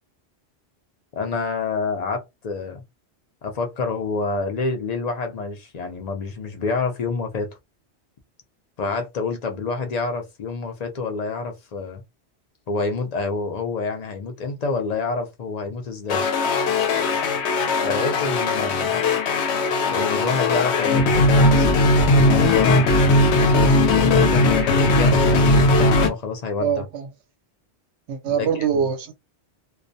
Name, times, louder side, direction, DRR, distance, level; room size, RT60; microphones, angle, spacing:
voice 1, 1.1-2.8 3.4-7.5 8.8-12.0 12.7-16.2 17.8-19.0 19.9-21.7 22.0-22.9 23.9-26.9 28.3-28.5, left 4 dB, 50° left, 0.5 m, -28 dB
sound 1, 16.1-26.1, left 2 dB, 75° left, 0.8 m, -18 dB
voice 2, 26.6-27.1 28.1-29.1, right 7 dB, 80° right, 0.9 m, -23 dB
2.3 x 2.1 x 2.6 m
omnidirectional pair, 1.1 m